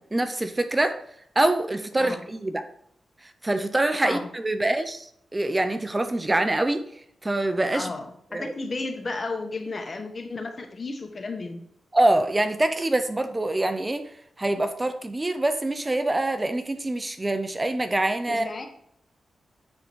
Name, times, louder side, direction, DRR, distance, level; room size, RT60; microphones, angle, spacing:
voice 1, 0.1-1.0 1.4-2.6 3.4-5.1 5.3-6.8 7.2-7.9 8.3-8.5 11.9-14.1 14.4-18.5, right 1 dB, 20° right, 9 dB, 0.7 m, -25 dB
voice 2, 7.7-11.6 18.3-18.7, left 3 dB, 45° left, 5 dB, 1.4 m, -33 dB
9.7 x 3.9 x 4.7 m, 0.69 s
cardioid pair, 80°, 0 cm